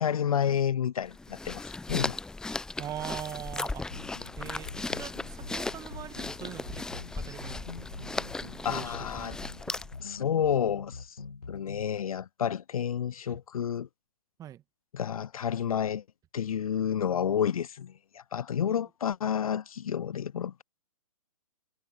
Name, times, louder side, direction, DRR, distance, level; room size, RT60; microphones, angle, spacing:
voice 1, 0.0-2.2 8.6-9.4 10.0-11.2 11.5-13.9 14.9-16.0 16.3-20.6, left 8 dB, 70° left, 0.5 m, -30 dB
sound 1, 1.0-10.1, left 3 dB, 5° left, 0.5 m, -37 dB
voice 2, 2.8-4.0 4.4-9.4 13.3-13.4 14.4-14.6 18.6-18.7, right 11 dB, 20° right, 1.5 m, -43 dB
sound 2, 3.9-11.9, left 4 dB, 85° left, 1.6 m, -45 dB
figure-of-eight pair, 125°, 19 cm